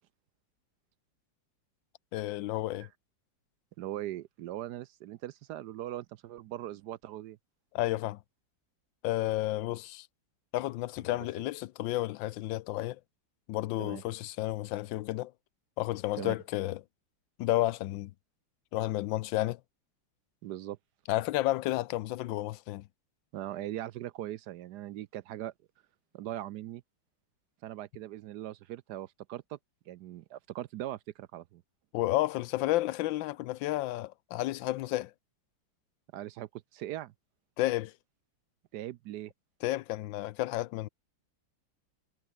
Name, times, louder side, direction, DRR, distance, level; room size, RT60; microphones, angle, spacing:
voice 1, 2.1-2.9 7.7-8.2 9.0-10.1 10.5-13.0 13.5-15.3 15.8-16.8 17.4-18.1 18.7-19.6 21.1-22.8 31.9-35.1 37.6-37.9 39.6-40.9, left 16 dB, 80° left, 1.3 m, -31 dB
voice 2, 3.8-7.4 13.8-14.0 16.2-16.3 20.4-20.8 23.3-25.5 26.1-26.8 27.6-29.6 29.9-31.6 36.1-37.1 38.7-39.3, right 13 dB, 75° right, 1.0 m, -40 dB
omnidirectional pair, 2.1 m